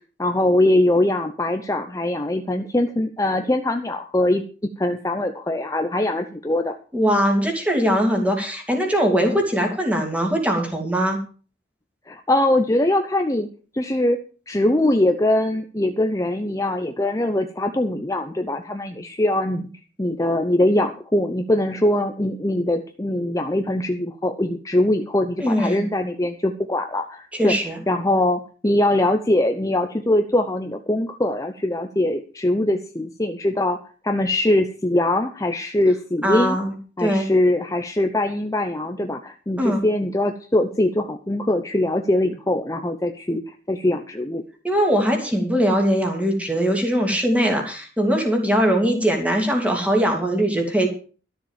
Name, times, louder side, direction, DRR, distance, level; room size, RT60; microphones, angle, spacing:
voice 1, 0.2-4.4 4.8-6.8 12.1-13.5 13.7-14.2 14.5-19.7 20.0-27.6 27.9-33.8 34.0-36.6 37.0-44.4, left 1 dB, 20° left, 6 dB, 0.8 m, -22 dB
voice 2, 6.9-11.2 25.4-25.8 27.3-27.8 36.2-36.7 37.0-37.2 39.6-39.8 44.6-50.9, equal, 10° right, 2 dB, 3.0 m, -21 dB
13.0 x 7.1 x 7.4 m, 0.39 s
head